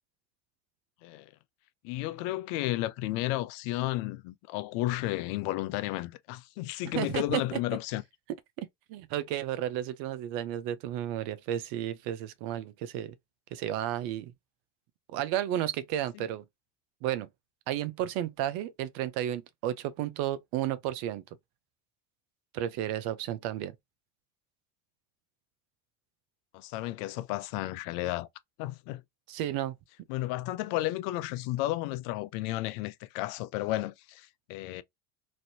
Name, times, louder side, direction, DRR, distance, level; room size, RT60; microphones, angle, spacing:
voice 1, 1.8-8.0 16.1-16.2 26.5-28.3 28.6-29.0 30.1-34.8, left 16 dB, 70° left, 0.5 m, -33 dB
voice 2, 6.9-7.6 8.9-13.1 13.5-14.3 15.1-16.4 17.0-17.3 17.7-21.2 22.5-23.7 29.3-29.7, right 12 dB, 65° right, 0.6 m, -32 dB
3.1 x 2.6 x 2.7 m
hypercardioid pair, 85°, 39 cm